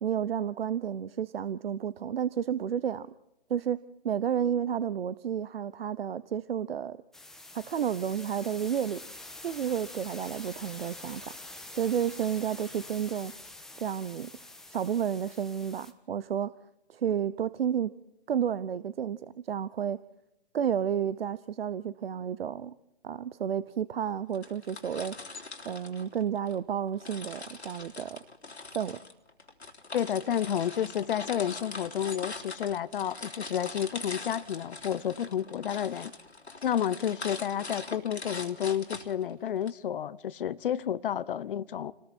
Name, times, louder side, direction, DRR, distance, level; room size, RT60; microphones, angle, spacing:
voice 1, 0.0-3.1 3.5-3.8 4.0-7.0 7.5-9.0 9.4-11.3 11.7-13.3 13.8-14.3 14.7-16.5 16.9-17.9 18.3-20.0 20.5-22.7 23.0-25.2 25.6-28.2 28.7-29.0, right 8 dB, 65° right, 0.9 m, -31 dB
sound 1, 7.1-15.9, left 2 dB, ahead, 1.5 m, -46 dB
sound 2, 24.3-26.6 27.0-39.7, left 3 dB, 85° left, 3.3 m, -42 dB
voice 2, 29.9-36.1 36.6-41.9, left 9 dB, 55° left, 1.1 m, -31 dB
30.0 x 20.0 x 4.5 m
hypercardioid pair, 140°, 32 cm